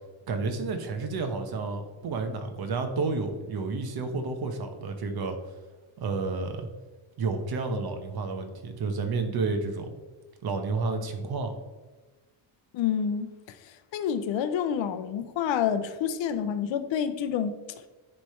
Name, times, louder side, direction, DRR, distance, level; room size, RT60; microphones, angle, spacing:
voice 1, 0.3-5.4 6.0-6.7 7.2-9.9 10.4-11.6, right 3 dB, 50° right, 1.0 m, -30 dB
voice 2, 12.7-17.8, left 8 dB, 65° left, 0.7 m, -29 dB
10.0 x 3.4 x 4.3 m
cardioid pair, 160°, 48 cm